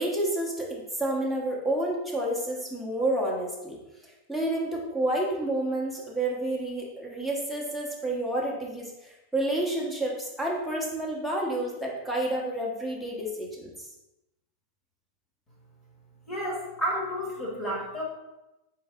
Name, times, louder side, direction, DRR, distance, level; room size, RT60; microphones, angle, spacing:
voice 1, 0.0-3.8 4.3-13.9, right 1 dB, 5° left, -3 dB, 0.9 m, -29 dB
voice 2, 16.3-18.0, equal, 20° left, -3 dB, 1.3 m, -31 dB
4.4 x 3.1 x 3.6 m, 0.99 s
supercardioid pair, 150°, 0 cm